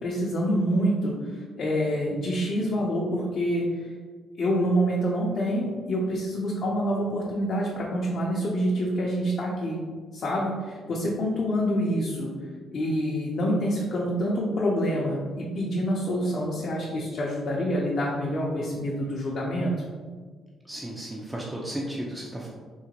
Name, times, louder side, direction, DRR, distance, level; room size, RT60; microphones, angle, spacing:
voice 1, 0.0-3.9 4.4-9.8 10.1-12.3 12.7-19.8, equal, 55° left, -4 dB, 0.5 m, -27 dB
voice 2, 20.6-22.5, right 1 dB, 10° right, -3 dB, 0.4 m, -34 dB
3.8 x 2.1 x 2.8 m, 1.5 s
cardioid pair, 90°, 0 cm